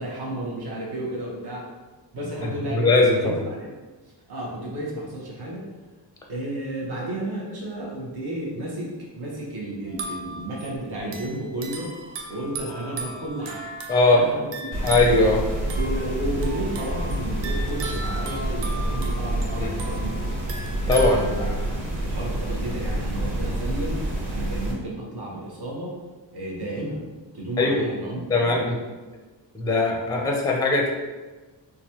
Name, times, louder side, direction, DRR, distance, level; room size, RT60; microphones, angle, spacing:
voice 1, 0.0-1.7 2.1-2.9 3.1-3.7 4.3-5.7 6.3-13.6 14.0-14.9 15.7-20.3 20.9-21.6 22.0-24.0 24.3-26.0 26.3-27.0 27.3-28.6, right 1 dB, 60° right, -3 dB, 1.1 m, -32 dB
voice 2, 2.4-3.4 13.9-14.3 14.8-15.4 19.6-19.7 20.9-21.2 27.6-27.8 28.3-28.8 29.5-30.9, left 2 dB, 10° left, 0 dB, 0.5 m, -20 dB
sound 1, 9.9-21.8, right 2 dB, 80° right, 0.6 m, -37 dB
sound 2, 14.7-24.7, right 1 dB, 45° right, 1.5 m, -28 dB
3.9 x 2.4 x 2.8 m, 1.3 s
cardioid pair, 95°, 44 cm